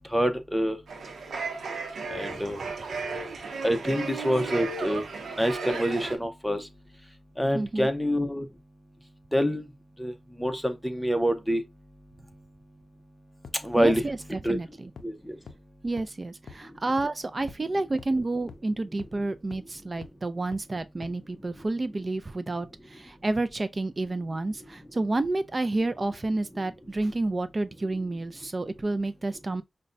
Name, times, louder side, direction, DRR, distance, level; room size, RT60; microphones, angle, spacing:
voice 1, 0.1-0.8 2.1-2.6 3.6-5.0 5.4-6.6 7.4-8.4 9.3-9.6 10.0-10.1 10.4-11.6 13.6-14.1 14.4-14.6 15.0-15.3, equal, ahead, 0.7 m, -26 dB
sound 1, 0.9-6.2, right 4 dB, 90° right, 0.7 m, -34 dB
voice 2, 7.5-7.9 13.8-14.9 15.8-29.6, right 2 dB, 35° right, 0.4 m, -30 dB
sound 2, 13.4-13.5 13.9-14.0 14.5-14.6 15.0-15.1 15.5-15.6 16.0-16.1 16.5-16.6 17.0-17.1 17.5-17.6 18.0-18.1 18.5-18.6 19.0-19.1 19.5-19.6 20.0-20.1 20.5-20.6 21.0-21.1, left 5 dB, 85° left, 0.4 m, -43 dB
5.1 x 2.2 x 2.6 m
cardioid pair, 70°, 0 cm